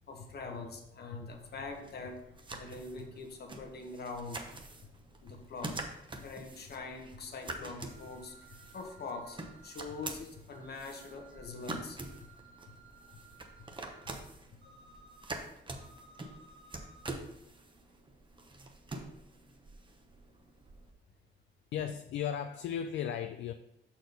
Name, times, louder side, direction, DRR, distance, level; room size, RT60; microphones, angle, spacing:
voice 1, 0.1-2.2 2.5-4.4 5.2-12.3 13.0-13.2 14.6-14.7, left 3 dB, 55° left, 4 dB, 1.3 m, -44 dB
sound 1, 1.3-20.9, right 2 dB, 25° right, 0.9 m, -46 dB
sound 2, 7.8-10.0 10.5-14.1 14.6-15.2 15.7-17.1, right 4 dB, 65° right, 1.5 m, -59 dB
voice 2, 21.7-23.5, left 9 dB, 70° left, 8 dB, 0.4 m, -35 dB
6.2 x 4.4 x 5.3 m, 0.82 s
cardioid pair, 90°, 20 cm